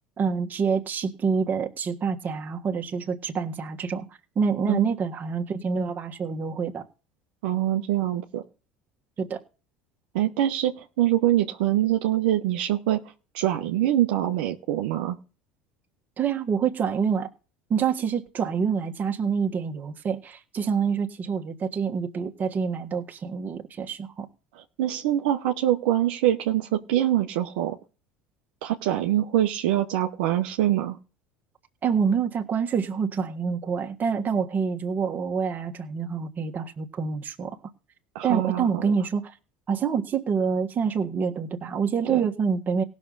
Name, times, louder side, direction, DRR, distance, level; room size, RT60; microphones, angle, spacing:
voice 1, 0.2-4.1 4.3-6.9 9.2-9.4 16.2-17.3 17.7-24.3 31.8-37.6 38.2-39.3 39.7-42.8, right 6 dB, 35° right, 1.6 m, -27 dB
voice 2, 7.4-8.4 10.1-13.0 13.3-15.2 24.8-27.8 28.6-31.0 38.1-38.8 42.1-42.2, right 13 dB, 70° right, 0.9 m, -24 dB
18.5 x 6.3 x 4.0 m
hypercardioid pair, 75°, 5 cm